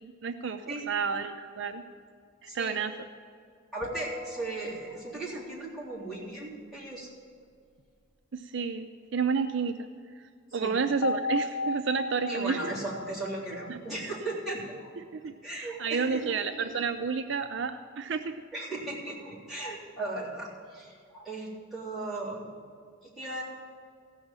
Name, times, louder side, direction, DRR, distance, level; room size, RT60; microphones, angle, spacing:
voice 1, 0.0-1.8 2.4-2.9 8.3-8.9 9.1-9.9 10.2-10.3 10.5-12.7 13.7-13.8 15.1-18.4, right 5 dB, 55° right, 7 dB, 0.5 m, -30 dB
voice 2, 3.7-7.1 10.5-10.7 12.3-14.9 15.4-16.4 18.5-22.5 23.0-23.4, right 2 dB, ahead, -9 dB, 3.5 m, -37 dB
sound 1, 3.8-5.3 11.0-14.4, left 3 dB, 90° left, 1.4 m, -36 dB
15.0 x 6.3 x 7.4 m, 2.1 s
head